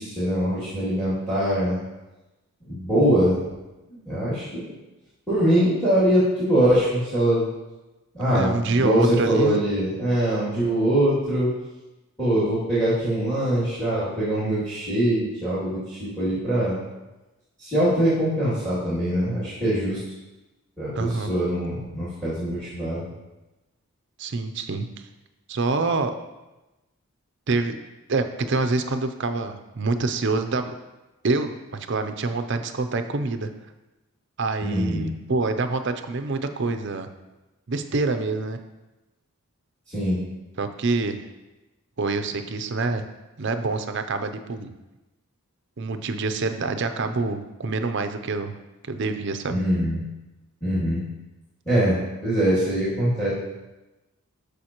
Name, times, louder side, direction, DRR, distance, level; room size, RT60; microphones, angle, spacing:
voice 1, 0.0-1.8 2.7-3.4 4.1-4.7 5.3-7.5 8.1-11.5 12.2-16.8 17.6-20.0 20.8-23.1 34.6-35.1 39.9-40.2 49.5-50.0 50.6-51.0 51.7-53.3, right 1 dB, 5° left, -11 dB, 2.6 m, -23 dB
voice 2, 8.3-9.6 20.9-21.3 24.2-24.9 25.5-26.2 27.5-27.8 28.1-30.7 31.2-33.5 34.4-37.1 37.7-38.6 40.6-41.2 42.0-43.0 43.4-44.7 45.8-48.5 48.9-49.6, right 3 dB, 50° right, 8 dB, 0.6 m, -26 dB
13.0 x 5.0 x 3.0 m, 1.1 s
head